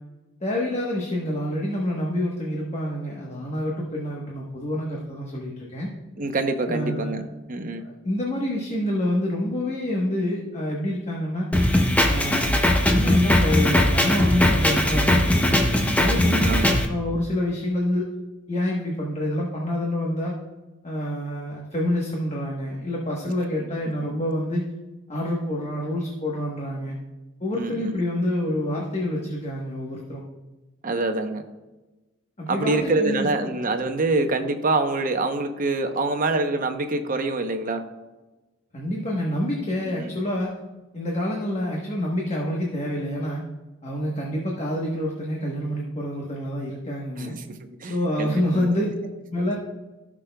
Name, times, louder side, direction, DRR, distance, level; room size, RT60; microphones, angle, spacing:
voice 1, 0.4-5.9 6.7-7.2 7.8-11.5 12.0-12.6 12.9-15.6 15.9-18.1 18.5-20.3 20.8-24.6 25.1-26.9 27.4-30.2 32.4-33.3 38.7-40.5 40.9-43.4 43.8-47.3 47.8-48.9 49.3-49.5, left 1 dB, 35° left, -2 dB, 1.1 m, -27 dB
voice 2, 6.2-7.2 7.5-7.9 15.5-15.9 16.4-16.8 27.6-27.9 30.8-31.4 32.5-37.8 39.8-40.1 47.2-48.7, right 2 dB, 45° right, 7 dB, 0.8 m, -26 dB
Drum kit, 11.5-16.9, left 1 dB, 5° left, 0.7 m, -20 dB
16.0 x 6.2 x 2.3 m, 1.1 s
head